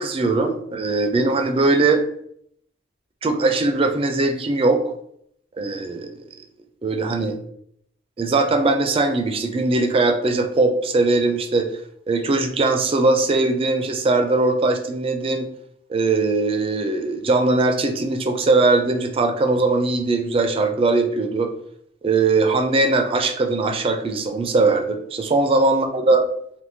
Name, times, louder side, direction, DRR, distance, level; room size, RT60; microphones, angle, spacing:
voice 1, 0.0-2.0 3.2-4.8 5.6-6.3 6.8-7.3 8.2-11.7 12.1-15.5 15.9-21.5 22.0-26.2, right 3 dB, 30° right, 6 dB, 0.3 m, -20 dB
3.5 x 2.5 x 2.6 m, 0.68 s
head